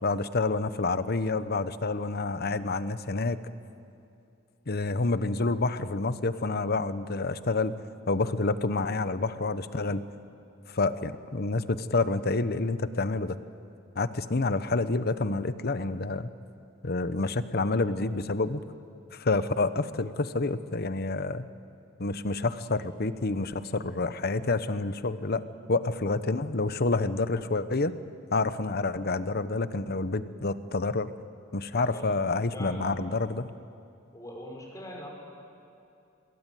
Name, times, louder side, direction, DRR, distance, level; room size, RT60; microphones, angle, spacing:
voice 1, 0.0-3.4 4.7-7.7 8.1-10.0 10.7-13.4 14.0-16.3 16.8-18.6 19.1-21.5 22.0-25.4 25.7-27.9 28.3-31.1 31.5-33.5, left 3 dB, 55° left, 13 dB, 1.0 m, -28 dB
voice 2, 31.7-32.1 32.5-32.9 34.1-35.1, equal, 15° left, 0 dB, 5.9 m, -42 dB
26.5 x 21.5 x 9.2 m, 2.6 s
head